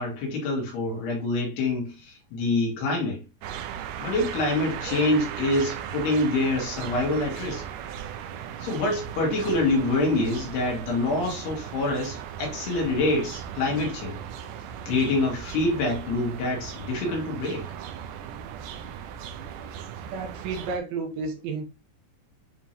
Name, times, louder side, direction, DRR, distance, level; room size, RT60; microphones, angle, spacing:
voice 1, 0.0-3.2 4.0-7.6 8.6-14.2 14.9-17.7, left 2 dB, 75° left, 4.3 m, -26 dB
sound 1, 3.4-20.8, right 9 dB, 90° right, 1.9 m, -37 dB
voice 2, 20.1-21.6, right 4 dB, 75° right, 2.6 m, -31 dB
9.3 x 3.6 x 2.9 m
omnidirectional pair, 4.7 m